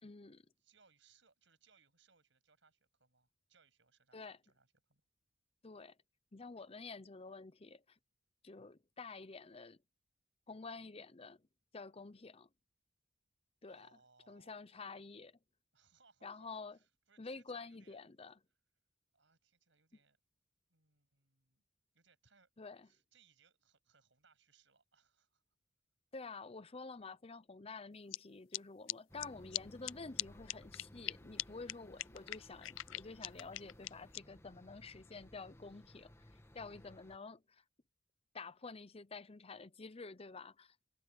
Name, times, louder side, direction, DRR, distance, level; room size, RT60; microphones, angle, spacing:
voice 1, 0.0-0.4 4.1-4.4 5.6-6.0 6.3-8.0 8.4-9.8 10.5-11.5 11.7-12.5 13.6-13.9 14.3-15.4 16.2-16.8 17.2-18.4 22.6-22.9 26.1-36.1 36.5-37.6 38.3-40.8, left 4 dB, 30° left, 0.8 m, -49 dB
voice 2, 0.6-5.0 13.7-14.6 15.7-18.0 19.1-20.2 20.7-21.6 21.9-22.5 22.8-25.4 29.1-29.3, right 5 dB, 70° right, 7.7 m, -71 dB
sound 1, 28.1-28.2 28.5-28.6 28.9-29.0 29.2-29.3 29.5-29.6 29.8-29.9 30.2-30.3 30.5-31.1 31.4-31.5 31.7-31.8 32.0-34.2, left 16 dB, 80° left, 0.4 m, -39 dB
sound 2, 29.1-37.2, left 1 dB, 15° left, 1.9 m, -59 dB
head